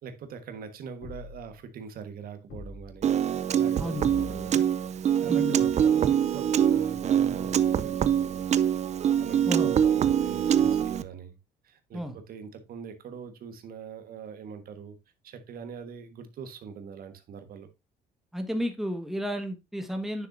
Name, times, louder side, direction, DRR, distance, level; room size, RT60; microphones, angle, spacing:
voice 1, 0.0-3.1 3.5-4.7 5.2-8.5 9.2-11.3 11.6-15.0 15.2-17.7, right 6 dB, 60° right, 1.4 m, -42 dB
sound 1, 1.0-1.6 2.5-3.1 4.0-4.6 5.6-6.2, left 3 dB, 65° left, 3.6 m, -44 dB
Piano, 3.0-11.0, right 9 dB, 40° right, 0.5 m, -24 dB
voice 2, 3.8-4.1 5.3-5.7 9.5-9.8 11.9-12.2 18.3-20.3, equal, ahead, 1.4 m, -32 dB
9.6 x 6.5 x 2.6 m
cardioid pair, 110°, 17 cm